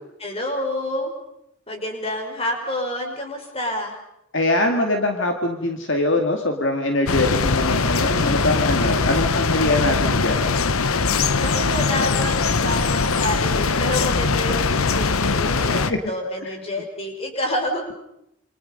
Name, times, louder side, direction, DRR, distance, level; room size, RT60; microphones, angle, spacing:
voice 1, 0.2-1.1 1.7-4.0 8.8-8.9 11.4-17.9, left 1 dB, 30° left, 3 dB, 5.7 m, -28 dB
voice 2, 4.3-10.4 15.7-16.0, left 2 dB, 60° left, 4 dB, 2.4 m, -23 dB
sound 1, 7.1-15.9, left 4 dB, 90° left, 1.1 m, -21 dB
28.0 x 26.5 x 5.4 m, 0.81 s
head